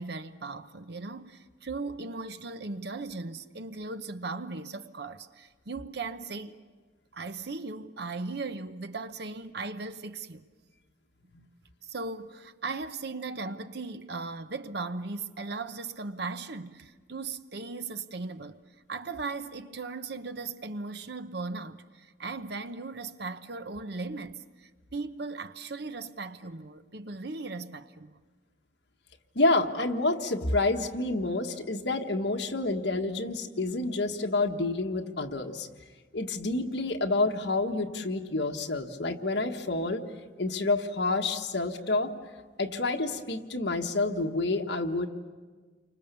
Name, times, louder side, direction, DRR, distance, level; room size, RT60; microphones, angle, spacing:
voice 1, 0.0-6.6 7.1-10.5 11.8-18.6 18.9-28.2, right 3 dB, 60° right, 0.9 m, -38 dB
voice 2, 29.3-35.7 36.1-40.0 40.4-42.1 42.6-45.1, left 2 dB, 60° left, 1.6 m, -28 dB
29.5 x 25.0 x 6.9 m
head